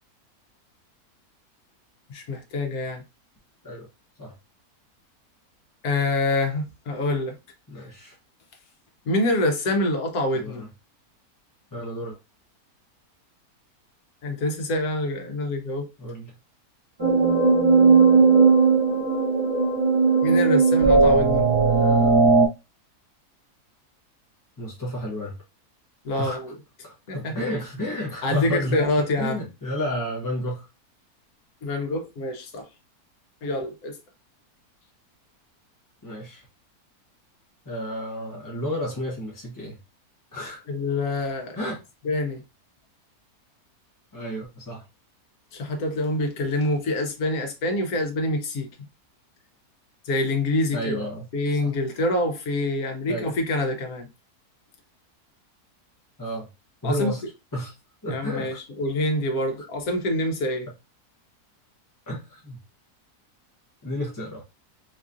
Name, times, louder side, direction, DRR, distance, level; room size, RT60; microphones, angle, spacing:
voice 1, 2.1-3.0 5.8-7.3 9.1-10.6 14.2-15.9 20.2-21.4 26.0-26.6 27.1-27.3 28.2-29.4 31.6-32.7 33.4-34.0 40.7-41.7 42.0-42.4 45.5-48.7 50.0-51.0 51.3-54.1 56.8-57.1 58.1-60.7, left 2 dB, 70° left, 1.3 m, -26 dB
voice 2, 7.7-8.2 10.3-10.7 11.7-12.1 16.0-16.3 21.6-22.4 24.6-25.4 26.2-26.4 26.8-28.8 29.2-30.7 36.0-36.4 37.7-39.8 40.3-40.6 41.5-41.8 44.1-44.8 50.7-51.3 51.6-51.7 53.1-53.3 56.2-56.5 56.8-57.2 57.5-57.8 58.0-58.6 62.1-62.6 63.8-64.4, equal, 20° left, 0.5 m, -31 dB
sound 1, 17.0-22.5, right 4 dB, 35° right, 0.4 m, -17 dB
4.6 x 2.4 x 2.6 m
omnidirectional pair, 1.6 m